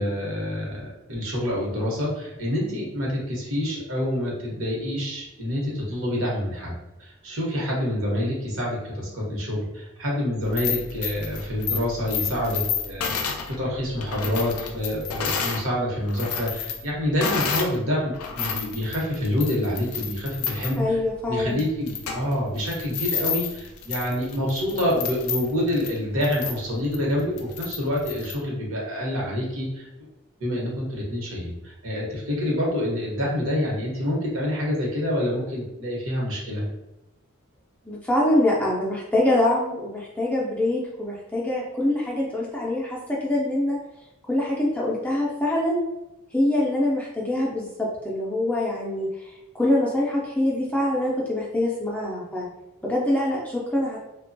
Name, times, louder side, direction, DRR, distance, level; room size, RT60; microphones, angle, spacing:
voice 1, 0.0-6.7 7.0-21.0 21.3-29.9 30.4-36.6, left 1 dB, 75° right, -3 dB, 0.9 m, -27 dB
sound 1, 10.4-15.7 16.0-17.8 18.1-28.4, left 6 dB, 85° left, 0.4 m, -31 dB
voice 2, 20.8-21.7 37.9-43.8 44.3-45.8 46.3-49.3 49.5-52.5 52.8-54.0, left 1 dB, 5° left, -4 dB, 0.3 m, -24 dB
2.8 x 2.2 x 2.6 m, 0.94 s
head